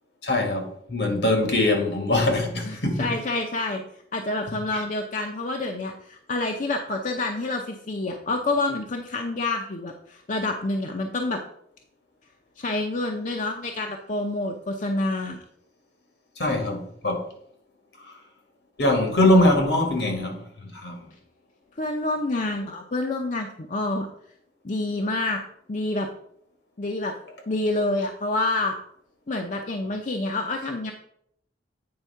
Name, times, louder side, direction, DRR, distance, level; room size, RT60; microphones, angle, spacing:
voice 1, 0.2-3.1 4.7-4.8 16.4-17.2 18.8-21.0, left 1 dB, 70° left, 1.9 m, -22 dB
voice 2, 2.6-3.8 4.1-11.4 12.6-15.4 21.8-24.1 24.6-25.4 25.7-26.1 26.8-27.1 27.5-28.7 29.3-30.9, left 2 dB, 45° left, 0.6 m, -28 dB
8.7 x 3.5 x 5.6 m
head